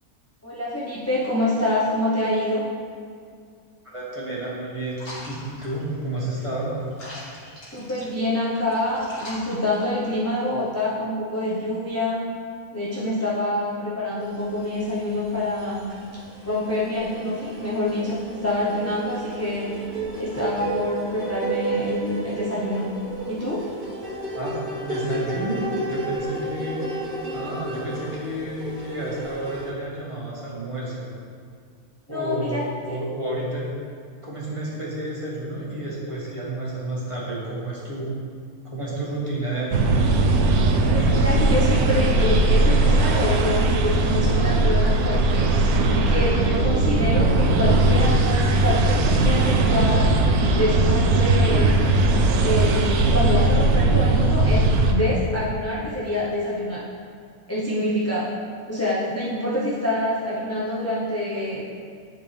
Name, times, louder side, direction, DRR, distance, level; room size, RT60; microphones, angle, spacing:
voice 1, 0.4-2.6 7.7-12.2 12.7-15.9 16.4-19.7 20.2-22.9 23.3-23.6 32.1-33.0 40.9-50.1 50.5-51.9 52.4-56.8 57.5-58.3 58.7-61.7, left 1 dB, 15° left, -8 dB, 0.7 m, -26 dB
voice 2, 3.8-6.7 24.3-24.5 24.8-26.9 27.3-31.1 32.1-33.6 34.2-38.2 38.6-40.0, right 1 dB, 20° right, -7 dB, 1.5 m, -30 dB
sound 1, 4.9-10.3, left 1 dB, 80° left, 2.4 m, -42 dB
sound 2, 14.4-15.2 15.5-29.7, right 2 dB, 40° right, 1.4 m, -32 dB
sound 3, 39.7-54.9, right 2 dB, 85° right, 1.1 m, -19 dB
10.5 x 4.5 x 3.4 m, 2.2 s
omnidirectional pair, 1.5 m